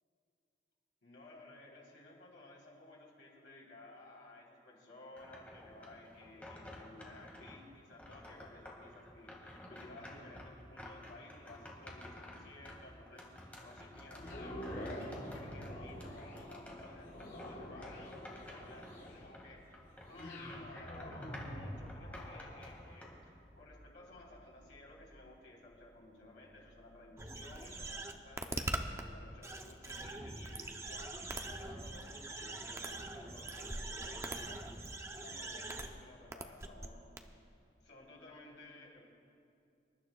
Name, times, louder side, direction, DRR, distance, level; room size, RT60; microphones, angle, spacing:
voice 1, 1.0-19.8 20.1-23.1 23.6-31.2 31.4-34.6 35.2-37.4 37.8-39.0, left 2 dB, 85° left, -4 dB, 3.6 m, -56 dB
sound 1, 5.2-7.6 8.0-19.5 19.7-23.1, left 1 dB, 10° left, 1.8 m, -52 dB
sound 2, 14.1-28.3 28.9-29.0, equal, 60° left, 3.6 m, -48 dB
sound 3, 27.2-29.0 29.4-35.9 36.3-36.9 37.2-37.3, right 2 dB, 15° right, 0.5 m, -42 dB
26.0 x 12.0 x 2.3 m, 2.6 s
head